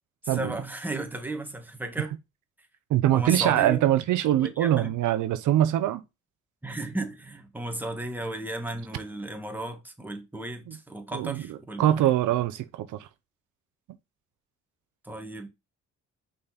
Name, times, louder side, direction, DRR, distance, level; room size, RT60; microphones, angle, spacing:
voice 1, 0.2-2.1 3.1-3.8 4.4-4.9 6.6-12.1 15.0-15.5, right 2 dB, 5° right, 1.4 m, -34 dB
voice 2, 2.9-6.0 10.7-10.8 11.1-13.1, right 12 dB, 80° right, 0.7 m, -23 dB
5.6 x 4.1 x 4.1 m
cardioid pair, 90°, 30 cm